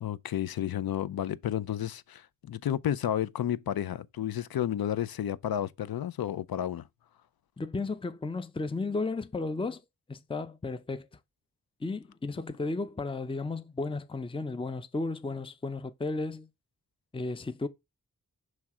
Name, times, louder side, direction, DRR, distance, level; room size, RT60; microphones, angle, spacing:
voice 1, 0.0-6.8, left 10 dB, 90° left, 0.5 m, -31 dB
voice 2, 7.6-9.8 10.1-11.1 11.8-16.5 17.1-17.7, left 3 dB, 15° left, 0.6 m, -34 dB
7.2 x 3.2 x 4.8 m
wide cardioid pair, 55°, 35 cm